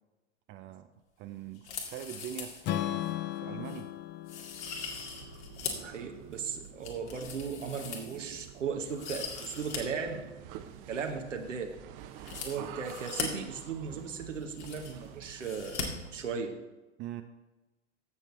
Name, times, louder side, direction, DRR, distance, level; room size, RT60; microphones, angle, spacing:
voice 1, 0.5-0.9 1.2-3.9 17.0-17.2, right 11 dB, 30° right, 8 dB, 0.5 m, -43 dB
sound 1, 1.5-2.6 3.0-3.1 3.6-3.8 4.3-5.9 6.3-8.4 8.8-9.8 10.1-10.2 12.2-13.3 14.1-14.2 14.3-15.1 15.4-15.8 16.1-16.2, left 6 dB, 65° left, 2.1 m, -40 dB
Strum, 2.6-6.8, left 14 dB, 30° left, 0.5 m, -37 dB
sound 2, 4.6-16.4, right 10 dB, 45° right, 0.8 m, -48 dB
voice 2, 5.8-10.2 10.9-11.7 12.4-15.9 16.1-16.6, right 5 dB, 80° right, 3 dB, 1.1 m, -37 dB
15.0 x 6.6 x 3.2 m, 1.1 s
figure-of-eight pair, 85°, 37 cm